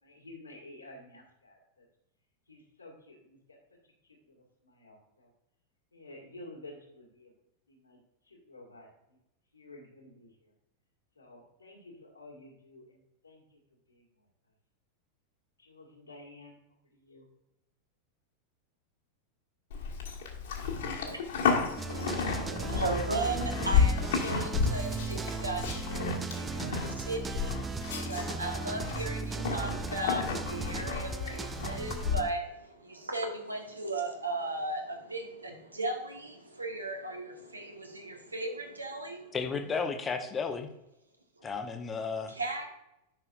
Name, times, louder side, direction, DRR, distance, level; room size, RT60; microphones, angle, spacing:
voice 1, 0.0-1.9 2.5-5.3 5.9-7.3 7.7-9.2 9.5-10.5 11.1-13.6 13.9-14.3 15.6-16.6 16.8-17.3 21.9-22.4, left 2 dB, 80° left, -1 dB, 2.0 m, -52 dB
Livestock farm animals working animals, 19.7-32.2, left 5 dB, 60° left, 1.6 m, -32 dB
voice 2, 21.0-39.3 41.4-41.5 42.3-42.7, right 2 dB, 80° right, 3 dB, 1.2 m, -37 dB
sound 1, 21.8-32.3, right 5 dB, 15° right, 0.4 m, -37 dB
voice 3, 39.3-40.7 41.4-42.3, left 5 dB, 20° left, 7 dB, 0.9 m, -33 dB
11.0 x 5.7 x 2.5 m, 0.87 s
figure-of-eight pair, 90°, 0 cm